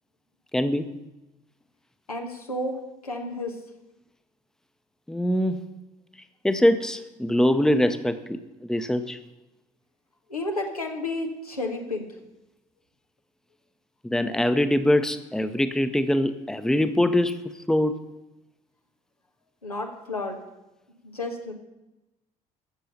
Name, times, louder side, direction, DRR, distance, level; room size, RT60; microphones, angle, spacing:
voice 1, 0.5-0.9 5.1-5.6 6.4-9.2 14.0-17.4 17.7-18.0, left 1 dB, 5° left, 10 dB, 0.8 m, -23 dB
voice 2, 2.1-2.8 3.0-3.5 10.3-12.1 19.6-20.4 21.0-21.5, left 2 dB, 85° left, 1 dB, 1.2 m, -31 dB
15.5 x 6.7 x 5.4 m, 0.98 s
figure-of-eight pair, 50°, 19 cm